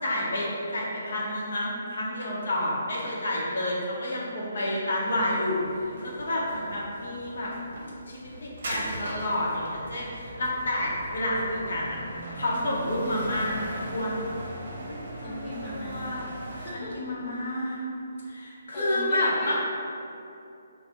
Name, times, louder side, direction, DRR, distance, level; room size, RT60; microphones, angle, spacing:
voice 1, 0.0-7.5 8.1-12.0 12.3-14.3 14.8-16.3 16.7-17.8 18.3-19.6, left 1 dB, 60° left, -4 dB, 0.8 m, -30 dB
sound 1, 5.0-16.7, right 1 dB, 50° right, 0.8 m, -40 dB
voice 2, 15.2-16.2 16.5-17.1 18.7-19.6, equal, 20° left, -8 dB, 0.8 m, -38 dB
4.1 x 2.2 x 4.1 m, 2.7 s
figure-of-eight pair, 140°, 0 cm